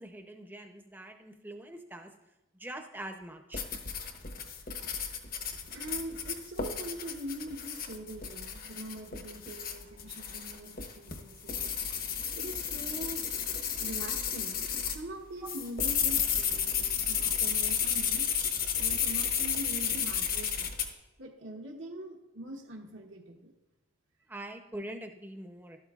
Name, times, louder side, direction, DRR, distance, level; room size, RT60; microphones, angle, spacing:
voice 1, 0.0-2.1 2.5-3.6 15.4-15.5 24.3-25.8, right 1 dB, 10° right, 5 dB, 0.7 m, -43 dB
sound 1, 3.5-15.0 15.5-20.9, left 7 dB, 45° left, 1.0 m, -32 dB
voice 2, 5.7-11.6 12.4-13.2 13.8-18.3 18.7-20.8 21.2-23.5, right 1 dB, 70° right, 0 dB, 1.1 m, -43 dB
12.5 x 12.0 x 2.4 m, 1.0 s
head